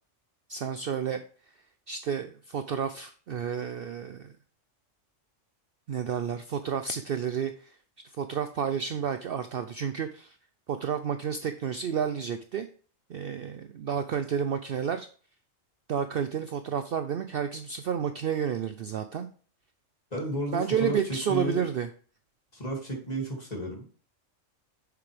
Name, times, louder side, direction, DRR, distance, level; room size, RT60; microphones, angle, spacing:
voice 1, 0.5-1.2 1.9-4.3 5.9-7.7 8.2-10.4 10.7-12.7 13.1-15.1 15.9-19.3 20.5-21.9, right 8 dB, 60° right, 9 dB, 0.6 m, -30 dB
voice 2, 20.1-21.0 21.3-21.7 22.5-23.9, equal, 30° left, -1 dB, 2.6 m, -32 dB
6.9 x 6.8 x 3.3 m, 0.41 s
omnidirectional pair, 1.3 m